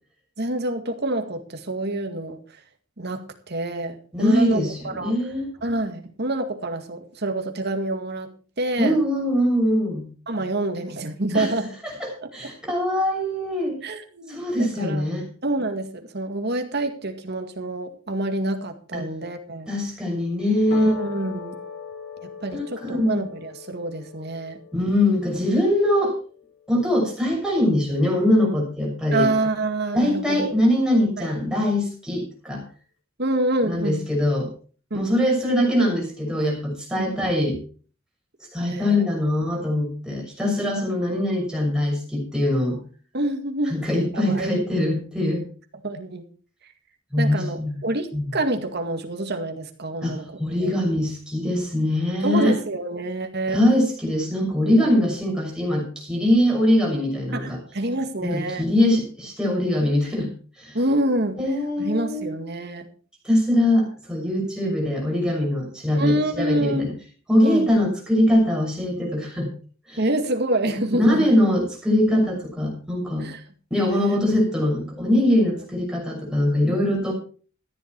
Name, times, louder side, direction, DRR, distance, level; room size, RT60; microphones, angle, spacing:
voice 1, 0.4-2.4 3.0-5.2 5.6-8.3 8.6-9.0 10.3-11.7 12.2-12.3 13.8-15.1 15.4-19.7 20.7-21.6 22.2-24.6 29.1-30.5 31.2-31.3 33.2-34.0 34.9-35.1 37.0-37.1 38.6-39.1 40.8-40.9 43.1-43.9 44.1-44.6 45.8-46.2 47.2-50.8 52.2-53.6 57.3-58.7 60.7-61.4 61.8-62.9 66.0-66.9 67.4-67.7 70.0-71.3 73.2-73.4 73.9-74.2, right 1 dB, 55° right, 6 dB, 2.1 m, -27 dB
voice 2, 4.1-5.5 8.8-10.1 11.3-11.5 11.8-13.8 14.3-15.2 18.9-19.0 19.7-20.9 22.5-23.2 24.7-26.1 26.7-29.3 29.9-32.6 33.6-34.5 34.9-37.6 38.5-42.8 43.7-45.4 47.1-47.7 48.1-48.2 50.0-52.5 53.5-57.6 58.2-60.3 60.6-60.8 61.4-62.3 63.2-66.9 67.3-69.5 69.9-70.0 70.9-73.3 73.7-77.1, left 1 dB, 5° right, -2 dB, 6.3 m, -22 dB
sound 1, 20.7-27.2, left 6 dB, 60° left, 4.1 m, -40 dB
14.0 x 10.5 x 4.7 m, 0.41 s
head